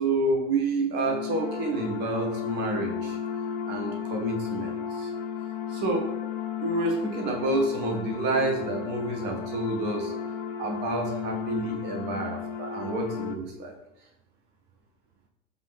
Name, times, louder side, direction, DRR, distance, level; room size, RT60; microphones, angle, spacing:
voice 1, 0.0-3.2 3.7-5.1 5.7-6.1 6.6-10.1 10.6-13.7, right 2 dB, 25° right, 2 dB, 0.6 m, -29 dB
sound 1, 1.1-13.4, left 7 dB, 40° left, 0.4 m, -34 dB
6.2 x 2.5 x 3.4 m, 0.88 s
figure-of-eight pair, 90°, 44 cm